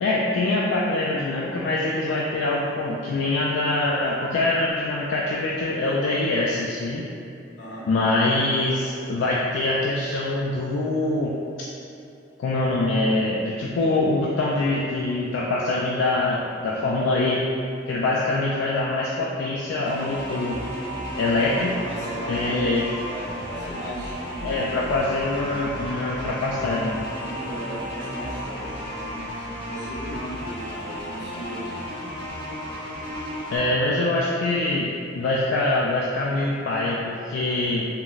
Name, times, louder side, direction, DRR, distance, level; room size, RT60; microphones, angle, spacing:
voice 1, 0.0-7.1 7.9-11.3 12.4-17.4 17.9-20.6 21.2-21.7 22.3-22.8 24.4-27.0 33.5-37.8, left 2 dB, 90° left, -4 dB, 0.3 m, -24 dB
voice 2, 7.6-7.9 21.4-24.6 27.2-31.8 32.2-32.3, equal, 70° left, -10 dB, 1.1 m, -37 dB
sound 1, 19.9-33.6, equal, 10° left, 1.0 m, -34 dB
3.8 x 2.0 x 2.3 m, 2.6 s
head